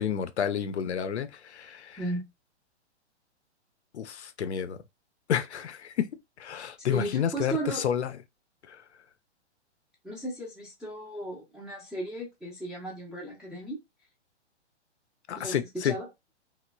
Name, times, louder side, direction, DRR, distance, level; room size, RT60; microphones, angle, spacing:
voice 1, 0.0-2.0 3.9-4.8 5.3-6.1 6.4-8.1 8.7-8.8 15.3-15.9, left 8 dB, 75° left, 0.5 m, -30 dB
voice 2, 6.9-7.9 10.0-13.8 15.4-16.1, right 2 dB, ahead, 0.4 m, -35 dB
3.1 x 2.0 x 2.2 m
figure-of-eight pair, 115°, 35 cm